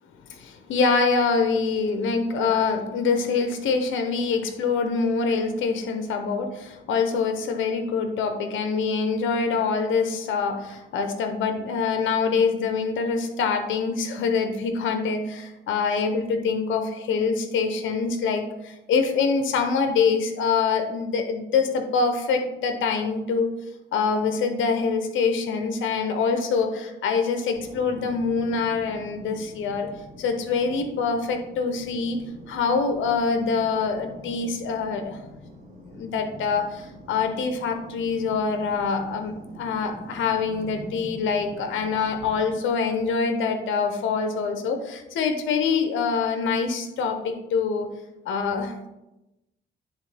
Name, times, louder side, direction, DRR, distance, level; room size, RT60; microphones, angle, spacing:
voice 1, 0.3-23.5 23.9-29.9 30.2-32.2 32.5-35.2 35.9-47.9 48.3-48.9, left 5 dB, 75° left, 7 dB, 0.8 m, -25 dB
sound 1, 27.5-42.5, equal, 50° right, 2.3 m, -45 dB
10.0 x 3.6 x 3.4 m, 0.95 s
cardioid pair, 90°, 20 cm